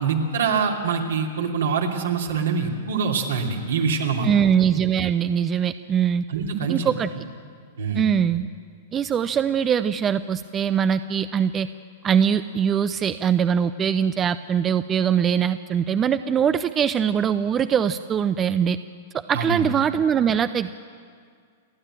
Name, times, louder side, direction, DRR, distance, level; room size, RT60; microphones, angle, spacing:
voice 1, 0.0-4.3 6.3-6.9 7.8-8.0 19.3-19.6, right 5 dB, 75° right, 1 dB, 2.9 m, -24 dB
voice 2, 4.2-6.2 6.7-7.1 8.0-8.5 8.9-11.7 12.0-18.8 19.3-20.7, right 8 dB, 25° right, 12 dB, 0.6 m, -22 dB
29.0 x 11.0 x 8.9 m, 2.1 s
hypercardioid pair, 110°, 0 cm